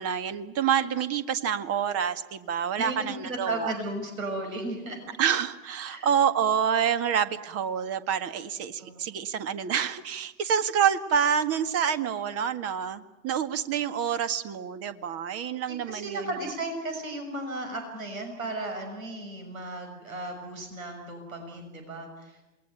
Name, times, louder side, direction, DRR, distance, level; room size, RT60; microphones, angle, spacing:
voice 1, 0.0-3.7 5.2-16.5, right 8 dB, 35° right, 11 dB, 1.9 m, -27 dB
voice 2, 2.8-5.0 5.9-6.1 8.8-9.0 15.7-22.6, right 2 dB, 80° right, 5 dB, 6.3 m, -35 dB
28.0 x 21.0 x 9.1 m, 1.0 s
hypercardioid pair, 100°, 40 cm